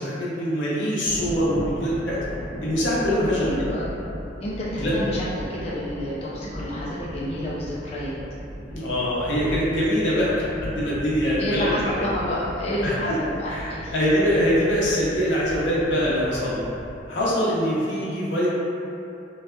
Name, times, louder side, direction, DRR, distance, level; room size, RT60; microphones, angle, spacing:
voice 1, 0.0-2.2 2.6-3.5 4.8-4.9 8.7-10.3 10.6-12.0 12.8-13.2 13.4-16.6 17.1-18.5, equal, 80° left, -7 dB, 0.6 m, -23 dB
Thunder, 1.0-17.1, equal, 50° right, 1.0 m, -36 dB
voice 2, 3.4-4.0 4.4-8.1 11.3-13.9, equal, 35° left, -7 dB, 0.4 m, -29 dB
2.6 x 2.3 x 2.2 m, 2.8 s
head